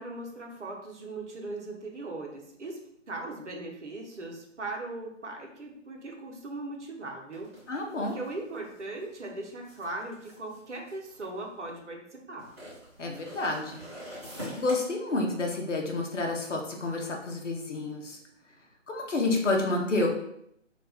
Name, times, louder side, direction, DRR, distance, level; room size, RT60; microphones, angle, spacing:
voice 1, 0.0-2.8 3.1-12.5, right 2 dB, 70° right, 1 dB, 0.8 m, -39 dB
sound 1, 7.3-11.8 12.4-14.7, equal, 20° right, 0.9 m, -45 dB
voice 2, 7.7-8.2 13.0-13.8 14.6-18.2 18.9-20.1, left 2 dB, 75° left, 1 dB, 0.8 m, -29 dB
2.5 x 2.1 x 3.3 m, 0.74 s
figure-of-eight pair, 150°, 37 cm